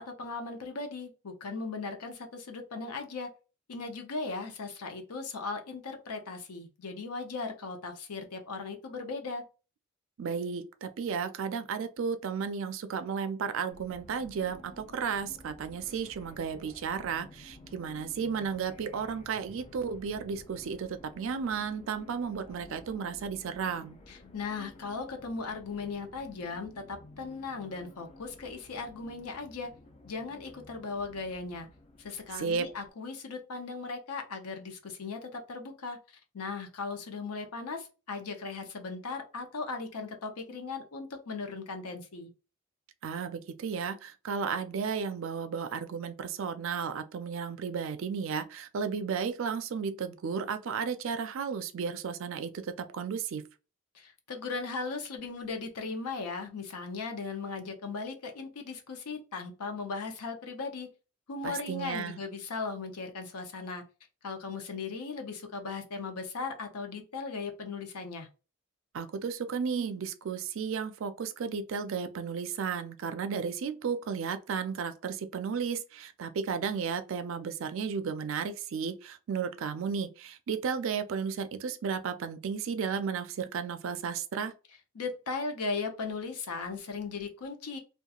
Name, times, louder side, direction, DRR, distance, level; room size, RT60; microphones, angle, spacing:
voice 1, 0.0-3.3 3.7-9.4 24.1-29.7 30.0-31.7 32.0-36.0 36.3-42.3 53.9-60.9 61.3-63.8 64.2-68.3 84.9-87.8, left 4 dB, 85° left, 0.6 m, -37 dB
voice 2, 10.2-24.0 32.3-32.7 43.0-53.4 61.4-62.2 68.9-84.5, right 6 dB, 60° right, 0.3 m, -34 dB
sound 1, 13.7-32.9, left 2 dB, 25° left, 0.4 m, -53 dB
2.8 x 2.2 x 2.3 m
head